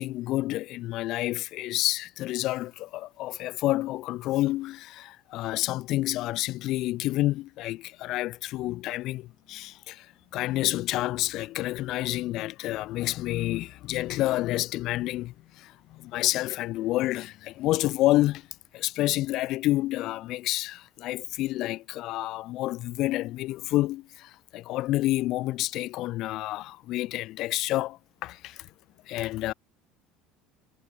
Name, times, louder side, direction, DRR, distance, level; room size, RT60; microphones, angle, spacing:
voice 1, 0.0-18.5 18.7-28.7 29.1-29.5, left 16 dB, 55° left, 0.4 m, -29 dB
figure-of-eight pair, 65°, 0 cm